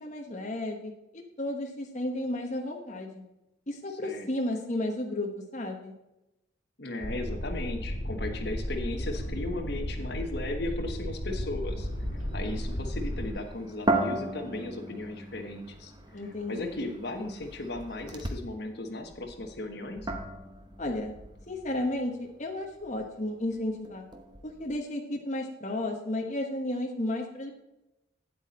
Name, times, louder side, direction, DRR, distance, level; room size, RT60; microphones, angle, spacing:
voice 1, 0.0-3.2 3.7-5.9 16.1-16.8 20.8-21.1 21.5-24.1 24.4-27.5, left 1 dB, 35° left, 1 dB, 1.1 m, -33 dB
voice 2, 6.8-11.9 12.3-15.9 16.5-20.1, left 2 dB, 55° left, 5 dB, 1.2 m, -36 dB
sound 1, 7.0-13.3, equal, 80° left, 2.9 m, -34 dB
sound 2, 11.7-18.5 19.0-24.7, right 2 dB, 20° right, 1.0 m, -37 dB
9.3 x 8.2 x 4.2 m, 0.96 s
head